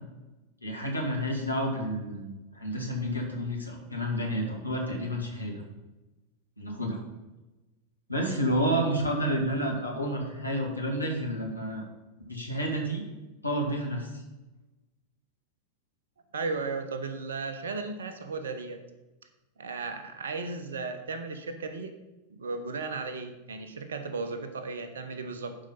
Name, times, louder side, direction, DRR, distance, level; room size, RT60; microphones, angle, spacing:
voice 1, 0.6-5.6 6.6-7.0 8.1-11.8 12.3-13.0 13.4-14.2, equal, 85° left, -1 dB, 2.2 m, -30 dB
voice 2, 16.3-18.8 19.6-22.0 22.3-25.6, right 4 dB, 65° right, 9 dB, 1.1 m, -35 dB
11.0 x 5.0 x 5.5 m, 1.1 s
figure-of-eight pair, 90°, 0 cm